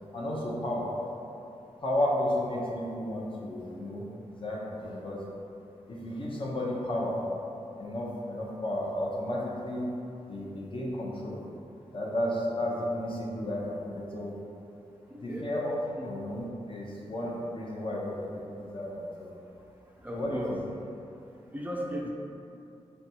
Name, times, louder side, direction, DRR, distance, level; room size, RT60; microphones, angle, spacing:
voice 1, 0.1-1.0 1.8-5.2 5.9-7.3 7.8-9.9 10.3-11.4 11.9-14.4 15.2-19.3 20.1-20.6, left 1 dB, 45° left, -4 dB, 0.7 m, -33 dB
voice 2, 15.1-15.5 15.9-16.1 20.0-20.6 21.5-22.1, equal, 15° right, -3 dB, 0.4 m, -36 dB
4.1 x 2.2 x 2.8 m, 2.7 s
cardioid pair, 55°, 12 cm